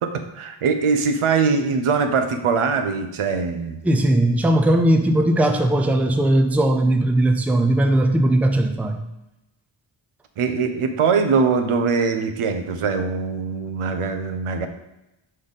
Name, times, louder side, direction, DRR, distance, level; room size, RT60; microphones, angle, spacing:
voice 1, 0.0-3.8 10.4-14.7, right 5 dB, 85° right, 7 dB, 0.8 m, -22 dB
voice 2, 3.8-9.0, right 1 dB, 5° right, 5 dB, 0.4 m, -18 dB
5.6 x 5.2 x 4.0 m, 0.92 s
wide cardioid pair, 135°, 49 cm